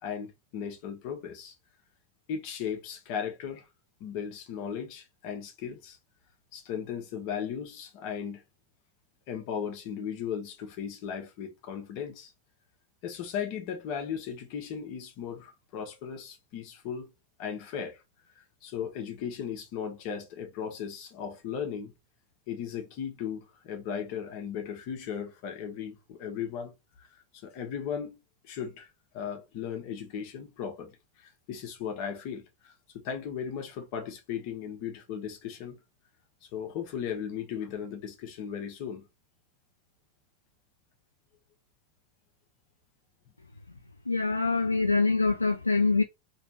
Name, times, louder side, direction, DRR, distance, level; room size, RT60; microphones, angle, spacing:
voice 1, 0.0-1.5 2.3-3.7 4.0-6.0 6.5-8.4 9.3-12.3 13.0-17.1 17.4-18.0 18.4-21.9 22.5-26.7 27.0-27.1 27.4-28.2 28.4-35.8 36.4-39.0, left 7 dB, 45° left, 1.1 m, -37 dB
voice 2, 44.1-46.0, left 3 dB, 80° left, 0.3 m, -24 dB
3.3 x 3.1 x 2.8 m
figure-of-eight pair, 90°, 0 cm